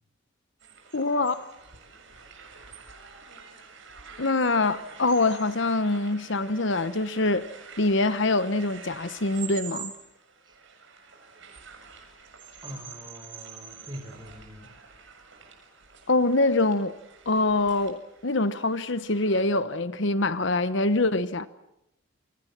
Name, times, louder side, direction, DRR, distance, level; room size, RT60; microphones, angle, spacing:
sound 1, 0.6-19.4, right 6 dB, 65° right, 6.9 m, -47 dB
voice 1, 0.9-1.5 4.2-7.5 7.8-9.9 16.1-16.9 17.3-21.5, left 2 dB, 60° left, 1.1 m, -24 dB
voice 2, 12.6-14.8, equal, 20° right, 5.3 m, -43 dB
28.5 x 24.5 x 7.5 m
head